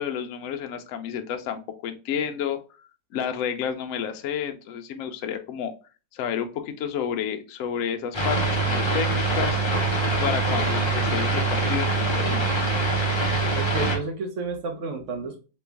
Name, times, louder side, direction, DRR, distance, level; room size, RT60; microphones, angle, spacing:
voice 1, 0.0-2.6 3.1-5.7 6.1-9.6 10.2-12.6, left 8 dB, 85° left, 7 dB, 0.7 m, -30 dB
sound 1, 8.1-14.0, right 3 dB, 35° left, 0.4 m, -24 dB
voice 2, 13.5-15.4, right 3 dB, 55° right, 4 dB, 0.8 m, -31 dB
3.1 x 3.1 x 3.4 m, 0.33 s
omnidirectional pair, 2.0 m